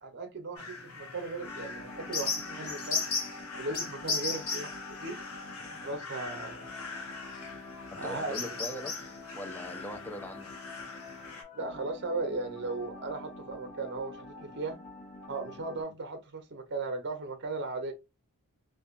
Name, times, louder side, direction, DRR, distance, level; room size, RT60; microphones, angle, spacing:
voice 1, 0.0-3.0 3.5-5.2 5.8-6.8 8.0-8.6 11.5-14.8 15.3-17.9, right 3 dB, 50° right, 0.7 m, -37 dB
sound 1, 0.6-11.4, left 4 dB, 75° left, 0.9 m, -38 dB
sound 2, 1.4-15.8, left 2 dB, 40° left, 0.9 m, -47 dB
voice 2, 7.9-10.5, left 1 dB, 10° left, 0.4 m, -41 dB
2.5 x 2.3 x 2.4 m
head